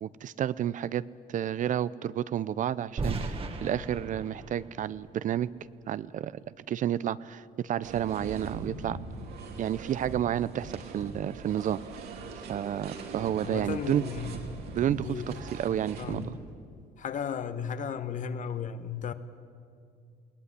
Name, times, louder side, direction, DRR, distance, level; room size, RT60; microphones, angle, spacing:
voice 1, 0.0-1.0 1.3-5.5 5.9-6.3 6.7-9.0 9.6-12.0 12.3-14.0 14.7-16.3, right 10 dB, 50° right, 0.6 m, -31 dB
sound 1, 3.0-5.9, right 3 dB, 35° right, 1.8 m, -37 dB
sound 2, 7.8-16.3, right 3 dB, 70° right, 3.2 m, -41 dB
voice 2, 13.4-15.3 16.0-16.3 17.0-19.1, left 7 dB, 50° left, 1.3 m, -35 dB
21.0 x 18.0 x 9.8 m
cardioid pair, 110°, 17 cm